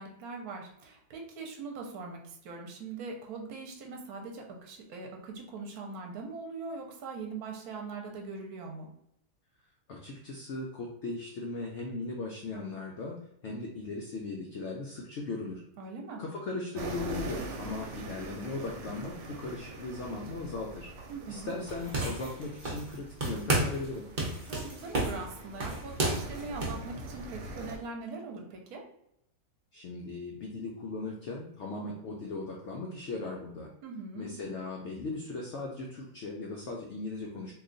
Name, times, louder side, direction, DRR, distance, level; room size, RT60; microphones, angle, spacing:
voice 1, 0.0-8.9 15.8-16.2 21.1-21.5 24.5-28.8 33.8-34.3, right 4 dB, 70° right, 1 dB, 1.1 m, -41 dB
voice 2, 9.9-13.2 13.4-15.6 16.2-20.9 21.3-24.1 29.7-33.7 34.2-37.5, left 3 dB, 85° left, -1 dB, 0.6 m, -38 dB
sound 1, 16.8-27.8, right 2 dB, 90° right, 1.2 m, -43 dB
sound 2, 21.7-23.0 23.2-23.9 24.2-26.8, right 2 dB, 45° right, 0.7 m, -31 dB
2.9 x 2.3 x 3.8 m, 0.77 s
omnidirectional pair, 1.8 m